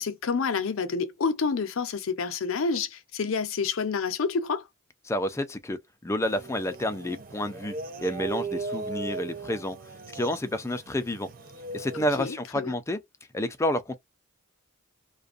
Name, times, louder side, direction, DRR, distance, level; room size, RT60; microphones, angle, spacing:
voice 1, 0.0-4.7 12.2-12.7, left 5 dB, 70° left, 0.5 m, -28 dB
voice 2, 5.1-9.8 10.1-11.3 11.7-13.0 13.3-14.0, left 1 dB, 15° left, 0.4 m, -29 dB
sound 1, 6.2-12.2, right 3 dB, 45° right, 0.5 m, -38 dB
2.5 x 2.2 x 2.4 m
head